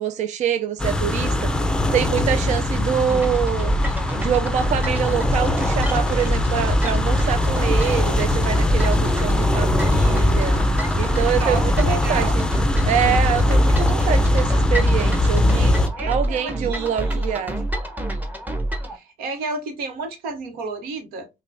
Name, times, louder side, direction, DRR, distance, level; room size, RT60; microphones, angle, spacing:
voice 1, 0.0-1.6 1.9-3.7 4.2-10.6 11.0-12.4 12.8-15.7 16.1-17.6, right 9 dB, 55° right, 0.4 m, -25 dB
sound 1, 0.8-15.9, left 1 dB, 5° left, 0.5 m, -21 dB
sound 2, 3.1-18.9, right 1 dB, 10° right, 1.0 m, -28 dB
voice 2, 11.3-12.4 16.0-17.5 18.9-21.3, right 3 dB, 85° right, 1.0 m, -32 dB
5.2 x 2.2 x 2.6 m
cardioid pair, 90°, 15 cm